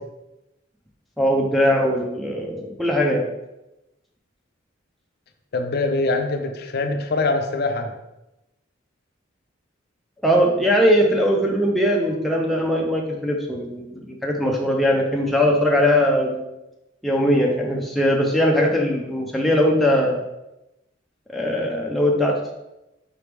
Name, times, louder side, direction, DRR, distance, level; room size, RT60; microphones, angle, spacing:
voice 1, 1.2-3.3 10.2-16.4 17.0-20.2 21.3-22.5, equal, ahead, -2 dB, 0.4 m, -20 dB
voice 2, 5.5-7.9, left 3 dB, 55° left, 5 dB, 0.5 m, -23 dB
4.9 x 3.2 x 3.3 m, 0.94 s
head